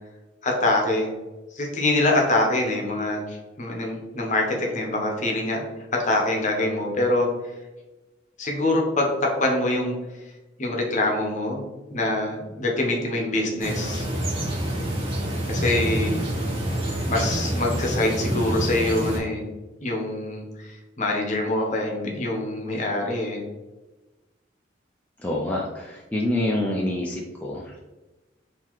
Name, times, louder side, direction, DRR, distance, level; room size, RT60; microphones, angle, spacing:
voice 1, 0.4-1.1 1.5-5.6 5.9-7.3 8.4-10.0 10.6-11.6 11.9-14.1 15.5-16.2 17.1-19.4 19.8-23.4, left 2 dB, 40° left, 0 dB, 0.9 m, -24 dB
sound 1, 13.6-19.2, right 1 dB, 30° right, 0.9 m, -27 dB
voice 2, 25.2-27.8, left 1 dB, 10° left, -4 dB, 0.4 m, -27 dB
3.8 x 2.8 x 3.0 m, 1.1 s
head